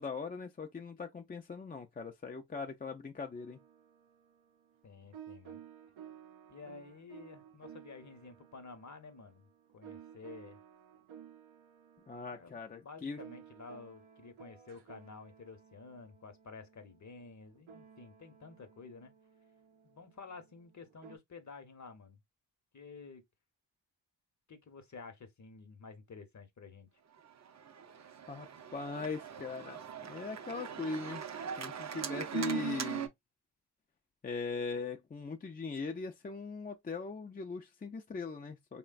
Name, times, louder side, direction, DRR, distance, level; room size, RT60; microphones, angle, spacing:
voice 1, 0.0-3.6 12.1-13.2 28.3-31.2 31.6-33.1 34.2-38.8, left 4 dB, 20° left, 0.3 m, -40 dB
sound 1, 3.3-21.2, right 9 dB, 90° right, 0.6 m, -56 dB
voice 2, 4.8-5.6 6.5-10.6 12.3-19.1 19.8-22.2 22.7-23.2 24.5-26.9, left 4 dB, 40° left, 0.8 m, -51 dB
Organ, 27.3-33.1, right 6 dB, 40° right, 0.5 m, -40 dB
3.1 x 2.2 x 2.3 m
cardioid pair, 45°, 46 cm